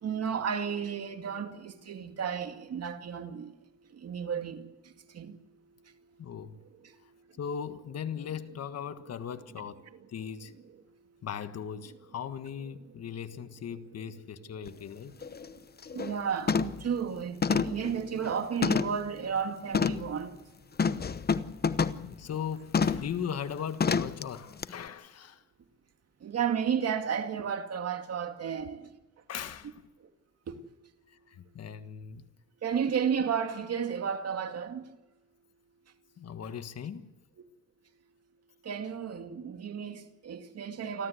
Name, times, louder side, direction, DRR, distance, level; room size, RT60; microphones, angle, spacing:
voice 1, 0.0-3.5 3.9-4.7 5.1-5.4 9.5-9.6 9.9-10.1 12.8-12.9 13.9-14.0 15.9-20.3 26.2-28.9 30.5-30.6 32.6-34.8 38.6-41.1, right 7 dB, 55° right, 2.3 m, -33 dB
voice 2, 6.2-6.6 7.4-9.8 10.1-10.5 11.2-15.2 22.0-25.4 29.3-29.7 31.1-32.3 36.2-37.1, left 8 dB, 55° left, 1.6 m, -38 dB
sound 1, 14.7-14.8 15.2-15.5 15.8-16.1 16.5-16.9 17.4-19.1 19.7-20.1 20.8-22.1 22.7-23.1 23.8-24.2 24.6-24.7, left 5 dB, 30° left, 0.9 m, -28 dB
28.5 x 12.5 x 8.1 m
cardioid pair, 90°, 30 cm